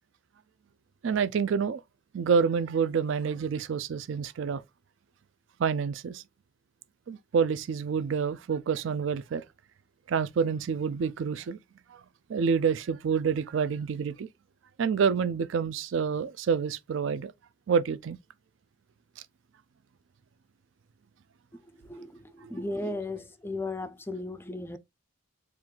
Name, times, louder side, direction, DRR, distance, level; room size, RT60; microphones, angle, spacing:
voice 1, 1.0-1.8 2.1-4.6 5.6-6.2 7.1-9.4 10.1-11.6 11.9-12.0 12.3-14.3 14.8-17.3 17.7-18.2 22.4-22.6, right 6 dB, 65° right, 0.4 m, -28 dB
voice 2, 21.9-24.8, left 2 dB, 10° left, 0.3 m, -36 dB
4.5 x 2.5 x 3.7 m
head